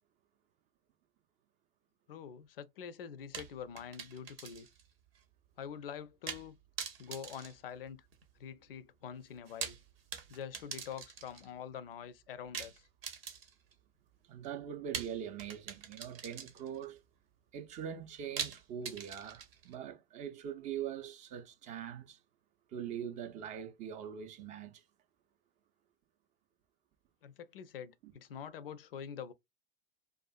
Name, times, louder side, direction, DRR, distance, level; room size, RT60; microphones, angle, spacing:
voice 1, 2.1-4.7 5.6-6.6 7.0-8.0 8.4-9.8 10.3-12.8 27.2-29.3, left 8 dB, 70° left, 0.4 m, -45 dB
sound 1, 3.3-4.9 5.1-5.2 6.3-6.5 6.8-8.3 9.4-11.5 12.5-13.7 14.9-16.8 18.4-19.7, right 7 dB, 75° right, 0.7 m, -43 dB
voice 2, 14.2-17.0 17.5-22.2 22.7-24.8 28.0-28.1, right 9 dB, 25° right, 0.4 m, -42 dB
2.5 x 2.3 x 2.4 m
figure-of-eight pair, 90°, 30 cm